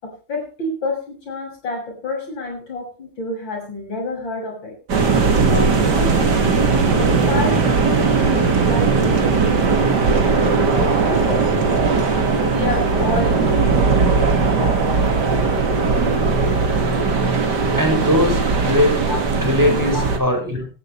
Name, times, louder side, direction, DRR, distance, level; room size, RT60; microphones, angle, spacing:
voice 1, 0.0-4.8 5.3-11.4 12.1-15.3 19.1-19.2 19.9-20.0, left 2 dB, 60° left, 1 dB, 7.5 m, -29 dB
sound 1, 4.9-20.2, right 4 dB, 55° right, 2.8 m, -18 dB
voice 2, 17.7-19.0 19.4-20.7, left 1 dB, 10° right, 2 dB, 5.2 m, -19 dB
17.0 x 13.0 x 3.3 m, 0.34 s
omnidirectional pair, 2.3 m